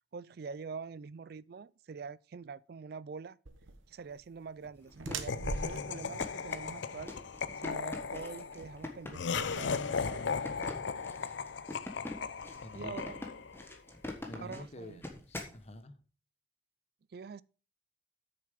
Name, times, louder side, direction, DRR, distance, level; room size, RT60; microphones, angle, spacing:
voice 1, 0.1-3.4 3.9-7.1 7.6-10.3 12.7-13.2 14.3-15.0 17.1-17.4, right 5 dB, 50° right, 0.3 m, -45 dB
sound 1, 3.5-9.6, right 3 dB, 85° right, 1.2 m, -44 dB
sound 2, 4.8-15.6, left 1 dB, 10° left, 1.4 m, -45 dB
Laughter, 5.3-13.6, left 5 dB, 70° left, 0.5 m, -37 dB
voice 2, 12.6-12.9 14.3-16.0, left 1 dB, 35° left, 0.9 m, -48 dB
8.8 x 6.8 x 5.0 m
head